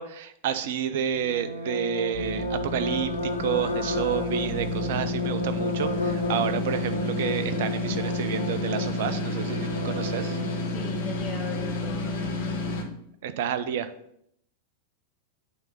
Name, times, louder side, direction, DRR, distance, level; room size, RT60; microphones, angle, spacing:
voice 1, 0.0-10.4 13.2-13.9, right 9 dB, 55° right, 11 dB, 0.6 m, -30 dB
sound 1, 1.1-10.7, equal, 85° left, 0.8 m, -33 dB
sound 2, 2.1-12.8, left 3 dB, 60° left, 1.4 m, -30 dB
voice 2, 10.7-12.7, left 3 dB, 20° left, -6 dB, 1.8 m, -40 dB
8.7 x 3.5 x 5.7 m, 0.72 s
figure-of-eight pair, 90°, 0 cm